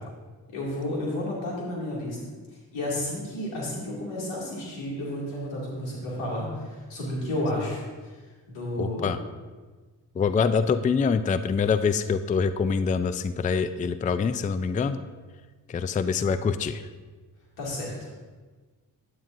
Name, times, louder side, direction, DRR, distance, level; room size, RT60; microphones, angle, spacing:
voice 1, 0.5-2.2 2.7-8.2 8.5-9.1 17.6-17.9, left 1 dB, 90° left, -5 dB, 2.5 m, -31 dB
voice 2, 8.8-9.2 10.2-15.0 15.7-16.8, left 5 dB, 20° left, 12 dB, 0.3 m, -25 dB
9.7 x 8.7 x 2.6 m, 1.4 s
supercardioid pair, 50°, 43 cm